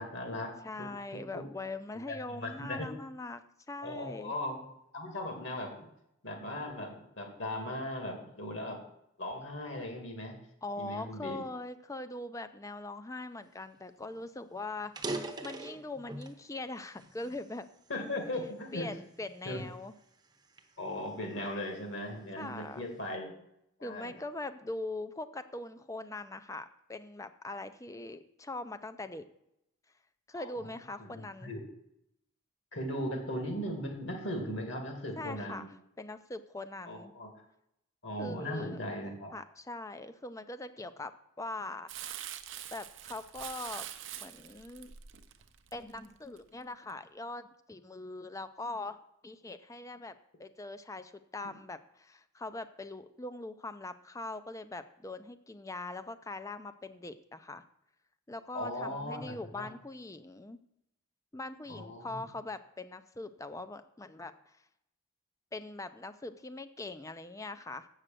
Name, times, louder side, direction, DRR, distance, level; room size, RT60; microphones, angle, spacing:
voice 1, 0.0-0.5 0.8-0.9 1.1-1.4 2.3-2.9 3.8-4.6 4.9-5.9 6.2-8.8 9.2-10.4 10.8-11.4 17.9-18.9 19.5-19.6 20.8-23.4 23.8-24.1 30.3-30.7 31.0-31.7 32.7-35.7 36.8-37.3 38.0-39.3 58.5-59.7 61.7-62.2, left 1 dB, 60° left, 3 dB, 2.2 m, -38 dB
voice 2, 0.6-4.3 10.6-17.7 18.7-20.0 22.4-22.9 23.8-29.2 30.3-31.5 35.2-35.7 36.0-37.1 38.2-38.8 39.3-41.1 41.4-42.2 42.7-43.9 44.2-44.9 45.7-49.0 49.2-57.6 58.3-60.6 61.3-64.6 65.5-67.9, left 2 dB, 15° left, 11 dB, 0.4 m, -42 dB
sound 1, 13.8-13.9 14.2-14.3 14.8-16.4 17.0-18.2 18.8-19.1 19.7-21.7, right 2 dB, 20° right, 0.8 m, -41 dB
Crumpling crinkling, 41.9-46.4 46.9-47.0, right 11 dB, 55° right, 0.6 m, -44 dB
7.8 x 6.4 x 7.5 m, 0.80 s
head